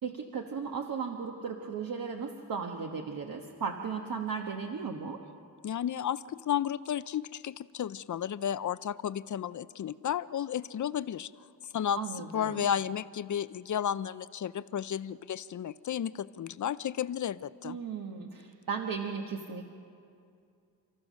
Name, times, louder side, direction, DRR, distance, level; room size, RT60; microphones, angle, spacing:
voice 1, 0.0-5.2 12.0-12.7 17.6-19.7, right 5 dB, 60° right, 2 dB, 1.4 m, -36 dB
voice 2, 5.6-11.3 11.7-12.0 12.3-17.8, left 9 dB, 50° left, 16 dB, 0.5 m, -33 dB
30.0 x 14.0 x 6.4 m, 2.4 s
cardioid pair, 100°, 39 cm